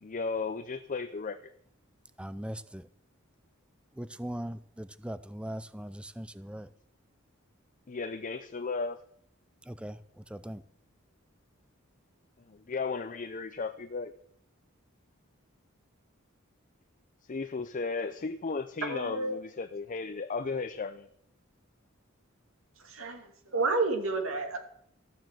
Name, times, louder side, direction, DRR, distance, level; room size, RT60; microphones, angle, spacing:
voice 1, 0.0-1.5 7.9-9.0 12.5-14.1 17.3-21.1, left 4 dB, 40° left, 0.6 m, -35 dB
voice 2, 2.2-2.9 3.9-6.7 9.7-10.6, right 1 dB, 5° right, 0.5 m, -40 dB
voice 3, 18.8-19.4 22.8-24.6, right 3 dB, 75° right, 2.4 m, -30 dB
14.0 x 7.4 x 7.6 m
head